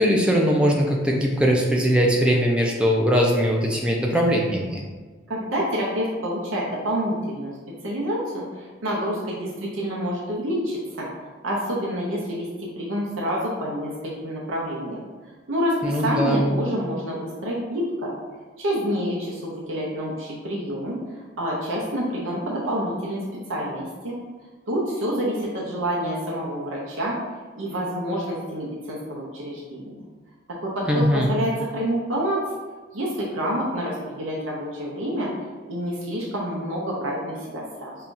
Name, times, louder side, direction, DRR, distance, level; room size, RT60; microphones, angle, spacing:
voice 1, 0.0-4.8 15.8-16.4 30.9-31.3, equal, 5° right, -1 dB, 0.4 m, -20 dB
voice 2, 5.3-7.5 7.8-11.1 11.4-15.0 15.5-18.1 18.6-21.0 21.4-24.2 24.7-27.2 27.6-30.0 30.6-32.4 32.9-35.3 35.7-38.0, equal, 80° right, -4 dB, 0.7 m, -27 dB
5.5 x 2.3 x 2.5 m, 1.4 s
head